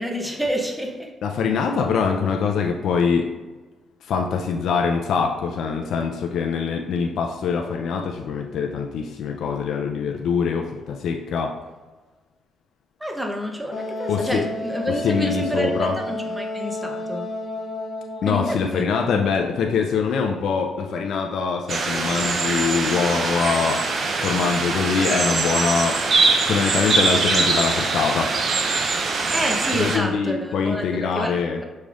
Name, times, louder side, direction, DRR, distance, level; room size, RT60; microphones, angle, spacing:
voice 1, 0.0-1.1 13.0-17.3 18.2-18.9 19.1-19.2 29.3-31.6, equal, 5° right, 2 dB, 0.7 m, -28 dB
voice 2, 1.2-3.3 4.0-11.5 14.1-14.4 14.9-16.0 18.2-23.8 24.2-26.0 26.5-28.3 29.7-31.6, left 5 dB, 70° left, 3 dB, 0.4 m, -23 dB
Wind instrument woodwind instrument, 13.7-18.4, left 1 dB, 50° left, 1.0 m, -31 dB
sound 1, 21.7-30.0, right 3 dB, 50° right, 0.5 m, -22 dB
5.3 x 3.2 x 2.4 m, 1.2 s
cardioid pair, 90°, 0 cm